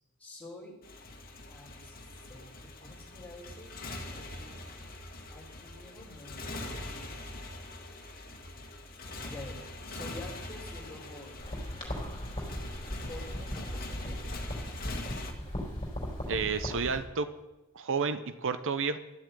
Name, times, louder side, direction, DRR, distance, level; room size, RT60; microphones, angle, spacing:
voice 1, 0.2-0.7 1.5-2.0 2.3-3.7 4.0-4.6 5.3-7.1 9.2-9.6 9.9-11.5 13.1-14.2, left 1 dB, 5° left, -5 dB, 4.1 m, -48 dB
Motorcycle, 0.8-15.3, left 2 dB, 40° left, 1.7 m, -43 dB
sound 1, 11.4-17.0, equal, 25° left, 4.0 m, -37 dB
voice 2, 16.3-17.3 17.7-19.0, right 5 dB, 60° right, 11 dB, 0.7 m, -30 dB
12.5 x 7.6 x 9.0 m, 1.0 s
head